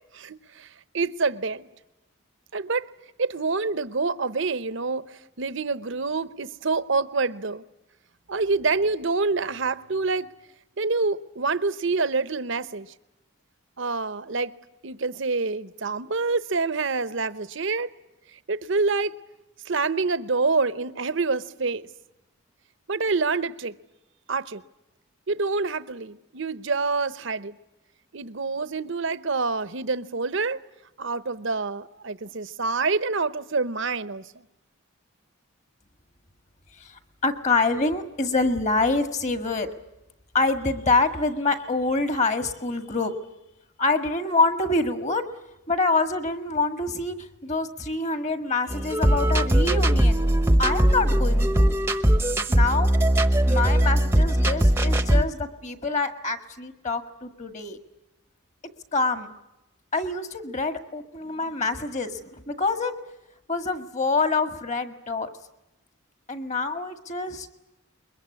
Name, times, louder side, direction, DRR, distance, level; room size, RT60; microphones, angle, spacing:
voice 1, 0.1-1.7 2.5-2.9 3.2-7.6 8.3-10.3 10.8-12.9 13.8-14.5 14.8-17.9 18.5-19.1 19.6-21.9 22.9-23.8 24.3-24.6 25.3-27.6 28.1-30.6 31.0-34.3, right 4 dB, 55° right, 0.8 m, -27 dB
voice 2, 36.8-39.7 40.3-43.1 43.8-45.2 45.7-50.3 50.6-51.8 52.5-52.9 53.5-57.8 58.9-59.3 59.9-62.9 63.5-65.3 66.3-67.5, left 3 dB, 35° left, 1.8 m, -26 dB
sound 1, 48.7-55.2, right 1 dB, 10° right, 0.9 m, -20 dB
22.0 x 22.0 x 9.7 m
head